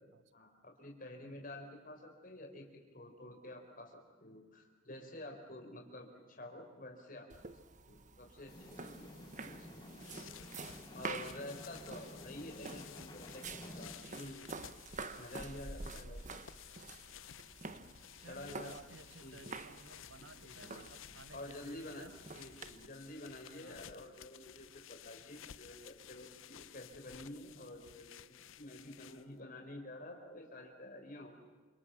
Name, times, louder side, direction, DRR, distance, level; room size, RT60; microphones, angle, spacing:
voice 1, 0.3-7.3 7.8-9.9 10.9-14.5 15.2-16.2 18.2-18.7 19.2-19.6 20.2-20.9 21.3-22.1 22.3-31.3, left 1 dB, 45° left, 3 dB, 5.0 m, -50 dB
sound 1, 7.3-22.9, right 3 dB, 40° right, 1.2 m, -49 dB
sound 2, 8.5-13.9, equal, 20° left, 5.9 m, -52 dB
sound 3, 9.8-29.4, left 10 dB, 80° left, 0.7 m, -55 dB
voice 2, 11.0-11.7 15.9-16.3 17.7-22.1 23.5-23.9, right 3 dB, 65° right, 14 dB, 1.1 m, -57 dB
28.5 x 26.0 x 7.3 m, 1.4 s
head